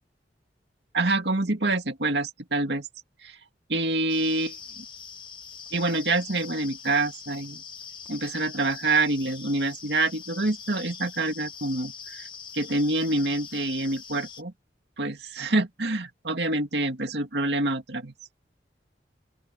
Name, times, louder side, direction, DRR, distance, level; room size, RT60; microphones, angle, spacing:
voice 1, 0.9-2.9 3.2-3.4 3.7-4.6 5.7-7.6 8.1-12.3 12.5-14.5 15.0-18.1, right 2 dB, 70° right, 2.4 m, -26 dB
sound 1, 4.1-14.4, left 6 dB, 25° left, 1.8 m, -43 dB
open air
head